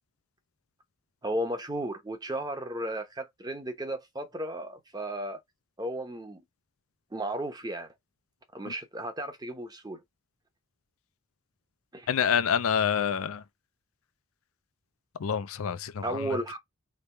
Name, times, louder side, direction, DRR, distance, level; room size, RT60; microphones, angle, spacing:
voice 1, 1.2-5.4 5.8-6.4 7.1-7.9 8.5-10.0 11.9-12.1 16.0-16.6, right 1 dB, 20° right, 0.8 m, -34 dB
voice 2, 12.1-13.4 15.2-16.2, left 7 dB, 75° left, 0.4 m, -27 dB
3.4 x 3.1 x 4.5 m
head